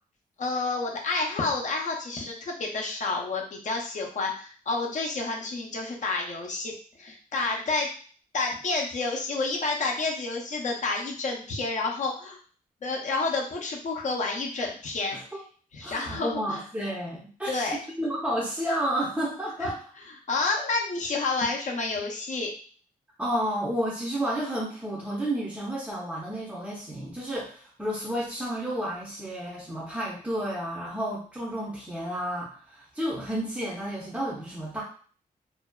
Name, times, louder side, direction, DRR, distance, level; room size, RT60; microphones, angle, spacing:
voice 1, 0.4-7.9 8.3-12.4 12.8-15.2 15.7-16.6 17.5-17.8 19.6-19.7 20.3-22.5, left 3 dB, 55° left, 0 dB, 0.6 m, -29 dB
voice 2, 15.8-19.8 23.2-34.8, right 1 dB, 10° right, -7 dB, 0.5 m, -31 dB
2.5 x 2.2 x 2.2 m, 0.43 s
wide cardioid pair, 145°, 15 cm